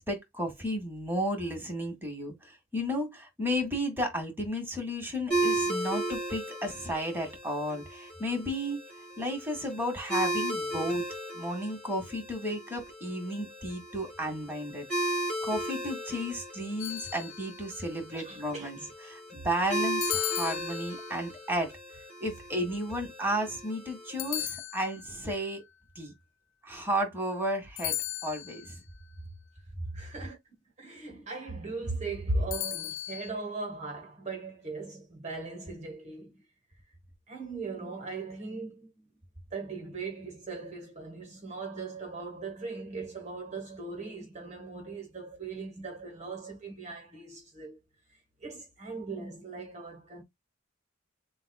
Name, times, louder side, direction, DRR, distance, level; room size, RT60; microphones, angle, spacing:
voice 1, 0.0-8.8 9.2-11.0 11.3-15.1 15.4-18.8 19.1-21.7 22.2-25.6 25.9-26.1 26.6-28.0 28.2-28.8, equal, 10° right, 1.8 m, -33 dB
sound 1, 5.3-24.4, right 1 dB, 5° left, 2.7 m, -36 dB
sound 2, 16.8-17.7 20.0-21.3 24.2-25.2 27.8-28.7 32.5-33.3, left 15 dB, 75° left, 0.5 m, -36 dB
voice 2, 18.1-18.9 29.9-30.4 30.8-36.4 37.3-39.1 39.5-47.8 48.1-50.2, right 3 dB, 35° right, 1.3 m, -38 dB
7.1 x 2.4 x 2.3 m
head